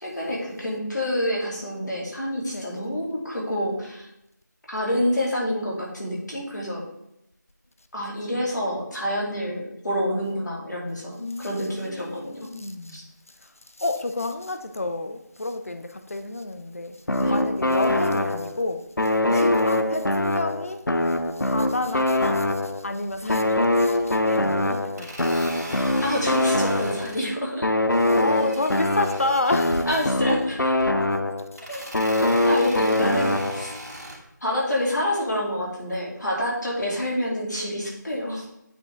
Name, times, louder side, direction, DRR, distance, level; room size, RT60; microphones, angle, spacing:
voice 1, 0.0-4.1 4.7-6.8 7.9-12.5 12.9-13.0 17.2-17.3 19.3-19.4 23.2-23.4 26.0-27.7 29.9-30.7 31.7-31.8 32.4-33.7 34.4-38.5, equal, 65° left, 2.8 m, -27 dB
voice 2, 11.2-13.0 13.3-13.5 13.8-17.0 17.3-20.8 21.3-25.7 28.0-29.9 31.5-32.0, left 2 dB, 45° left, 0.7 m, -30 dB
sound 1, 17.1-18.6 19.0-22.9 23.3-27.2 27.6-31.6 31.9-33.8, left 1 dB, 90° left, 0.7 m, -23 dB
sound 2, 23.0-23.4 23.7-24.3 25.0-27.3 27.9-29.9 30.6-31.0 31.6-34.2, right 1 dB, 60° right, 2.7 m, -38 dB
8.5 x 4.8 x 3.5 m
figure-of-eight pair, 170°, 10 cm